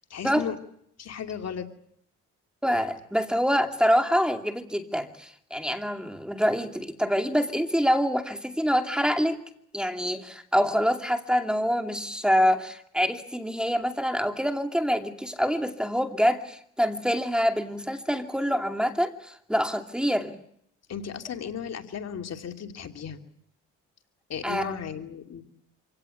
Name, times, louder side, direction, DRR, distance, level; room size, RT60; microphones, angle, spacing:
voice 1, 0.1-0.5 1.0-1.7 20.9-23.2 24.3-25.4, left 7 dB, 60° left, 5 dB, 2.8 m, -35 dB
voice 2, 2.6-9.4 9.7-20.4 24.4-24.8, equal, 5° right, 6 dB, 2.6 m, -26 dB
26.5 x 17.5 x 9.9 m, 0.68 s
cardioid pair, 90°, 30 cm